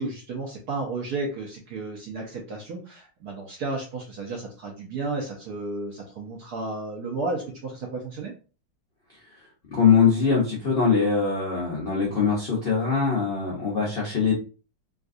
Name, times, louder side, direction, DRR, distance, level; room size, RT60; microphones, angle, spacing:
voice 1, 0.0-8.3, right 3 dB, 70° right, -1 dB, 0.9 m, -33 dB
voice 2, 9.7-14.3, left 5 dB, 80° left, -4 dB, 0.5 m, -22 dB
3.7 x 2.5 x 2.5 m, 0.35 s
omnidirectional pair, 2.4 m